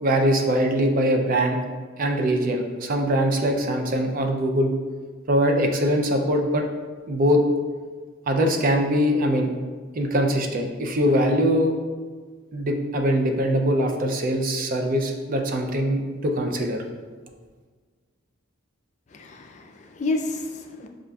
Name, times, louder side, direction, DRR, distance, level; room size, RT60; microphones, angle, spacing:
voice 1, 0.0-1.6 2.0-4.7 5.3-6.7 7.1-7.4 8.3-9.5 9.9-11.7 12.5-16.8, equal, 45° right, 3 dB, 0.4 m, -22 dB
voice 2, 19.1-20.9, left 2 dB, 35° left, 3 dB, 0.3 m, -30 dB
6.3 x 2.4 x 2.3 m, 1.5 s
head